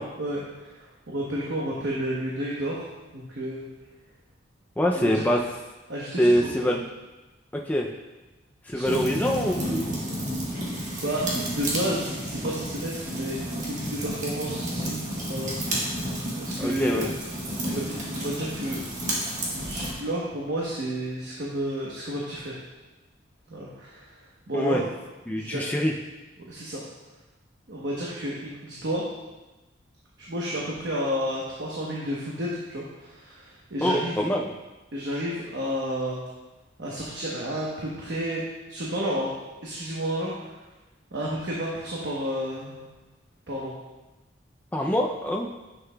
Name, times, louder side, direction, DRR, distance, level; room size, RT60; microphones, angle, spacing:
voice 1, 0.2-2.9 3.1-3.7 4.9-5.2 5.9-6.8 8.7-9.0 11.0-13.4 13.7-15.0 15.3-16.1 16.4-17.1 17.6-18.8 19.6-22.6 23.5-24.8 25.3-25.7 26.4-26.8 27.7-29.0 30.2-34.2 34.9-36.2 36.8-38.4 38.7-39.3 39.6-40.5 41.1-42.8 43.5-43.7, equal, 65° right, -5 dB, 1.0 m, -31 dB
voice 2, 4.8-5.4 6.2-6.8 7.7-7.9 8.7-9.9 16.6-17.1 24.5-24.8 25.3-25.9 33.8-34.5 44.7-45.5, equal, 10° left, 0 dB, 0.3 m, -24 dB
sound 1, 8.8-19.9, right 1 dB, 40° right, 1.4 m, -31 dB
9.8 x 5.7 x 2.2 m, 1.1 s
head